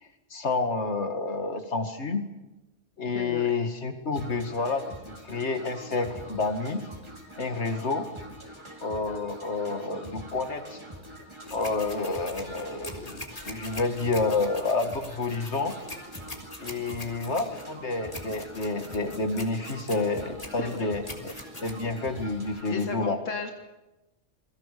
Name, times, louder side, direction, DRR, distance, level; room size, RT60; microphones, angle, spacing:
voice 1, 0.3-2.2 3.0-6.8 7.4-8.1 8.8-10.8 11.5-15.8 16.6-21.3 21.6-23.2, left 3 dB, 60° left, 7 dB, 2.5 m, -29 dB
voice 2, 3.1-3.6 20.6-20.9 22.3-22.4 22.6-23.5, left 4 dB, 80° left, 5 dB, 2.0 m, -35 dB
sound 1, 4.1-22.9, equal, 20° right, 4.5 m, -45 dB
sound 2, 11.5-22.6, left 1 dB, 30° left, 3.5 m, -44 dB
28.5 x 22.5 x 6.9 m, 1.0 s
omnidirectional pair, 1.3 m